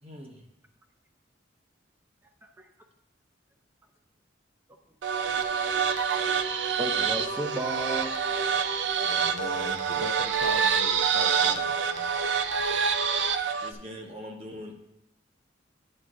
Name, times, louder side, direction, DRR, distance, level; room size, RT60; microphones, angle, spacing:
voice 1, 0.0-0.4 11.4-11.5 13.6-14.7, equal, 30° right, 2 dB, 0.9 m, -42 dB
sound 1, 5.0-13.7, right 6 dB, 70° right, 0.4 m, -26 dB
voice 2, 5.3-5.8 6.2-6.5 6.8-8.2, right 1 dB, 10° right, 4 dB, 0.6 m, -35 dB
voice 3, 9.0-12.1, left 3 dB, 85° left, 6 dB, 0.6 m, -40 dB
9.5 x 6.4 x 2.5 m, 0.79 s
head